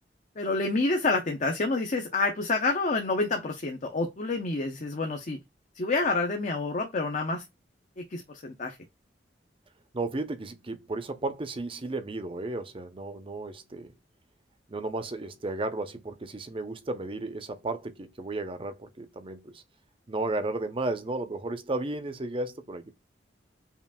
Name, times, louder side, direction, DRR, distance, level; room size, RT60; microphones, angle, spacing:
voice 1, 0.4-5.4 5.7-7.4 8.0-8.8, left 3 dB, 45° left, 0.7 m, -28 dB
voice 2, 9.9-13.9 14.7-19.6 20.1-22.9, right 2 dB, 30° right, 0.6 m, -34 dB
5.7 x 2.5 x 2.3 m
head